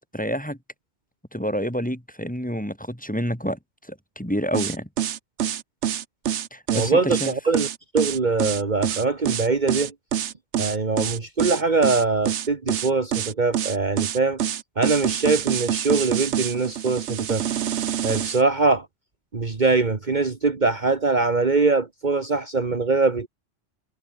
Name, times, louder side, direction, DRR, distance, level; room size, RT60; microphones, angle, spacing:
voice 1, 0.1-0.6 1.3-4.9 6.5-7.3, equal, 5° left, 3.2 m, -28 dB
sound 1, 4.5-18.4, right 9 dB, 80° right, 1.1 m, -26 dB
voice 2, 6.7-7.7 7.9-9.9 10.6-14.4 14.8-17.4 18.0-18.9 19.3-23.3, right 3 dB, 40° right, 1.6 m, -22 dB
omnidirectional pair, 1.2 m